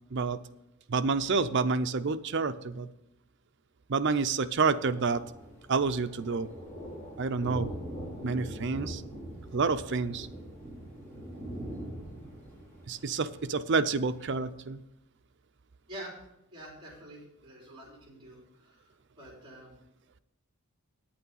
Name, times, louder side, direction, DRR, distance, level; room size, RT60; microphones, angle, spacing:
voice 1, 0.9-2.9 3.9-5.2 5.7-6.5 7.2-7.7 8.2-9.0 9.5-10.3 12.9-14.8, right 4 dB, 55° right, 10 dB, 0.5 m, -28 dB
Thunder, 4.4-14.4, equal, 10° left, 3.7 m, -43 dB
voice 2, 16.5-18.9 19.2-19.8, right 1 dB, 20° right, -2 dB, 3.7 m, -47 dB
9.0 x 8.6 x 5.5 m, 0.86 s
head